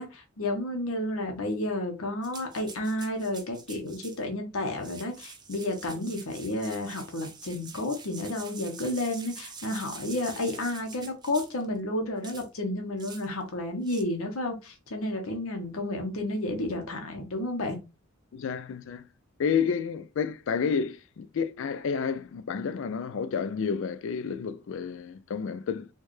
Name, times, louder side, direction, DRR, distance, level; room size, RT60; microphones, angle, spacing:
voice 1, 0.0-17.8, left 1 dB, 85° left, 0.9 m, -31 dB
sound 1, 2.2-4.2 4.7-11.6 12.2-12.5 13.0-13.3 13.8-14.0, right 5 dB, 20° right, 0.5 m, -45 dB
voice 2, 18.3-19.1 19.4-25.9, left 6 dB, 60° left, 0.3 m, -30 dB
4.4 x 2.3 x 3.1 m
head